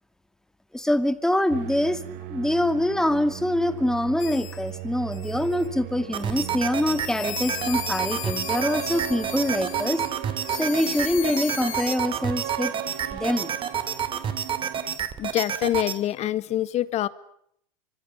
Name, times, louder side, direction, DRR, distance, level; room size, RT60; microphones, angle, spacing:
voice 1, 0.7-2.0 2.3-10.0 10.5-12.7 13.1-13.5, left 1 dB, 5° left, 11 dB, 2.4 m, -25 dB
sound 1, 1.5-15.0, right 13 dB, 55° right, 4.0 m, -37 dB
sound 2, 4.2-4.7 5.1-5.7 6.2-10.1 10.4-12.0, left 14 dB, 70° left, 2.6 m, -37 dB
sound 3, 6.1-16.0, right 8 dB, 30° right, 2.7 m, -30 dB
voice 2, 15.2-17.1, left 13 dB, 40° left, 15 dB, 1.9 m, -25 dB
26.0 x 25.5 x 7.2 m, 0.71 s
hypercardioid pair, 115°, 17 cm